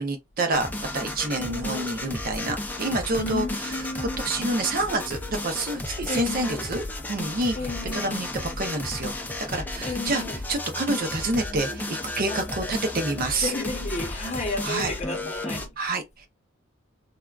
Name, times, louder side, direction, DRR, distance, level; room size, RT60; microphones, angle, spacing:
voice 1, 0.0-9.1 9.5-13.5 14.6-14.9 15.8-16.3, right 2 dB, 45° right, 0.5 m, -28 dB
sound 1, 0.5-15.7, left 1 dB, 10° left, 0.4 m, -33 dB
voice 2, 1.4-1.9 3.2-4.2 6.1-6.7 7.5-8.2 9.8-10.4 12.3-12.4 13.4-15.7, left 2 dB, 35° left, 0.8 m, -32 dB
3.4 x 2.3 x 2.2 m
head